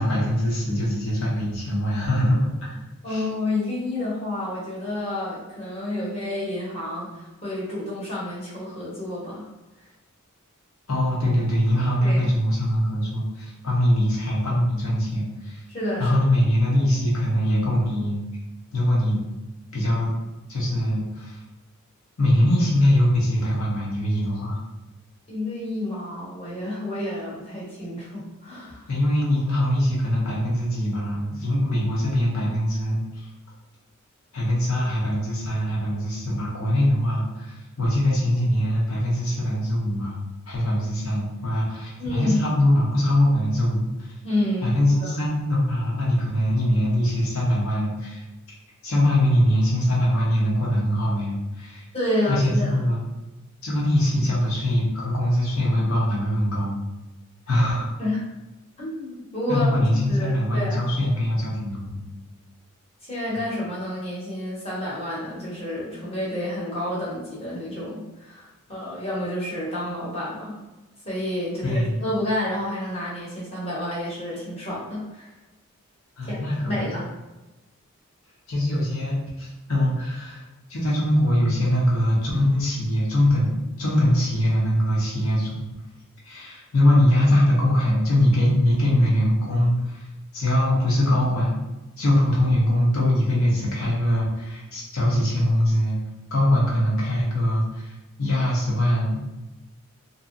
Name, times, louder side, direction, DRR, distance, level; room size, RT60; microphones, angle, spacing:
voice 1, 0.0-2.8 3.1-3.3 10.9-15.6 16.0-18.2 18.7-19.2 19.7-20.1 20.5-21.4 22.2-24.6 28.9-33.3 34.3-43.9 44.6-48.2 48.8-51.8 52.3-53.0 53.6-56.8 57.5-57.9 59.5-62.1 63.3-63.4 71.6-72.0 76.2-77.0 78.5-80.4 80.7-85.6 86.2-90.0 90.3-91.6 92.0-96.0 96.3-99.2, left 1 dB, 70° left, -4 dB, 0.8 m, -22 dB
voice 2, 3.0-9.4 12.0-12.3 15.7-16.1 25.3-28.8 42.0-42.6 44.2-45.1 51.9-52.8 58.0-58.3 58.8-59.7 60.1-60.9 63.0-70.6 71.0-75.3 76.2-76.4 76.6-77.1, left 1 dB, 30° left, -7 dB, 0.9 m, -29 dB
2.6 x 2.1 x 2.5 m, 1.0 s
head